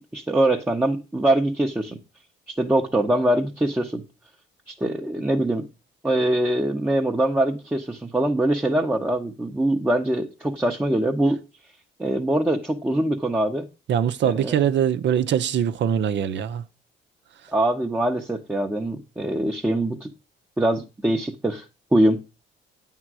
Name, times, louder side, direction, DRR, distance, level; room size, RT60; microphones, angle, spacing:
voice 1, 0.0-2.0 2.5-4.0 4.7-5.7 6.0-11.4 12.0-13.7 14.2-14.6 17.5-20.1 20.6-21.6 21.9-22.2, right 1 dB, 10° right, 0.8 m, -23 dB
voice 2, 13.9-16.6, right 9 dB, 65° right, 0.7 m, -22 dB
8.8 x 3.7 x 6.1 m
cardioid pair, 90°, 20 cm